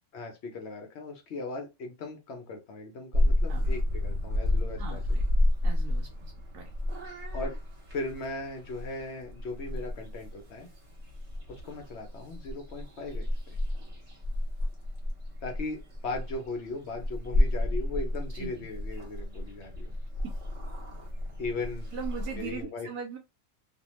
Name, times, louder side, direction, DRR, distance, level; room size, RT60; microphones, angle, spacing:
voice 1, 0.1-5.0 7.3-7.5 7.9-10.7 11.5-13.6 15.4-19.9 21.4-21.9 22.3-22.9, left 3 dB, 65° left, 3 dB, 0.7 m, -38 dB
Purr / Meow, 3.1-22.6, left 1 dB, 55° right, 1.1 m, -31 dB
voice 2, 4.8-5.2 5.6-6.7 18.3-18.7 21.9-23.2, right 5 dB, 80° right, 2 dB, 1.1 m, -40 dB
2.6 x 2.2 x 3.0 m, 0.25 s
omnidirectional pair, 1.6 m